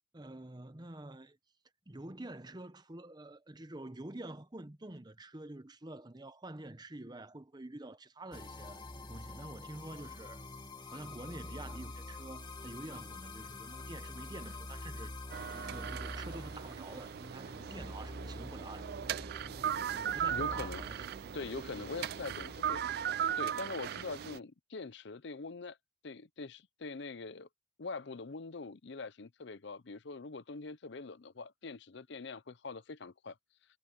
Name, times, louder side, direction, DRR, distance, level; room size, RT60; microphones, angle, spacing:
voice 1, 0.1-1.4 1.9-8.8 9.1-10.4 10.9-15.1 15.5-19.3 19.9-21.2 21.7-22.5, right 1 dB, 20° right, 0.9 m, -48 dB
sound 1, 8.3-23.5, left 2 dB, 20° left, 1.9 m, -47 dB
sound 2, 15.3-24.4, right 9 dB, 50° right, 0.3 m, -38 dB
voice 2, 20.3-20.8 21.3-22.8 23.4-25.8 26.0-27.5 27.8-33.4, left 4 dB, 60° left, 0.6 m, -43 dB
head